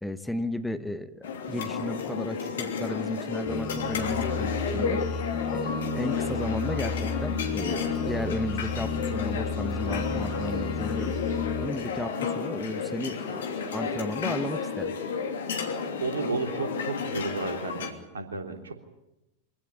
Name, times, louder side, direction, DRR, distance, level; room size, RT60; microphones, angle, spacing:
voice 1, 0.0-5.0 5.5-11.1 11.6-14.9, left 1 dB, 5° left, 9 dB, 1.3 m, -34 dB
sound 1, 1.2-17.9, left 5 dB, 60° left, 2.9 m, -32 dB
sound 2, 3.5-11.7, left 4 dB, 40° left, 3.6 m, -32 dB
voice 2, 15.8-18.7, right 4 dB, 70° right, 5 dB, 3.3 m, -32 dB
25.0 x 17.0 x 10.0 m, 0.93 s
figure-of-eight pair, 90°, 0 cm